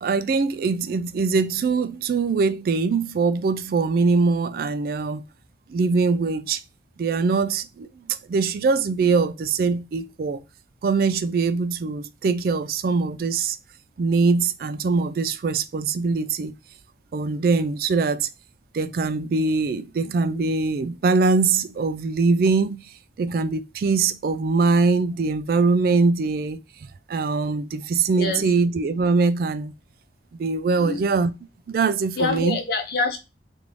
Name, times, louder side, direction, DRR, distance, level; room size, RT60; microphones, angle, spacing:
voice 1, 0.0-5.2 5.7-6.6 7.0-10.4 10.8-13.6 14.0-16.5 17.1-18.3 18.7-22.8 23.2-29.7 30.4-31.3 31.7-32.6, right 4 dB, 55° right, 0.3 m, -22 dB
voice 2, 32.2-33.2, left 4 dB, 60° left, 0.7 m, -25 dB
3.4 x 2.5 x 3.1 m
head